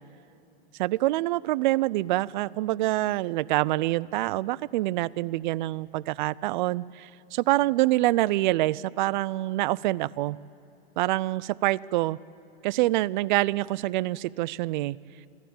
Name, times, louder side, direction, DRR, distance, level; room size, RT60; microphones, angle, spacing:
voice 1, 0.8-10.4 11.0-12.2 12.6-15.0, right 17 dB, 55° right, 22 dB, 0.5 m, -26 dB
28.0 x 12.0 x 8.8 m, 2.9 s
hypercardioid pair, 125°, 30 cm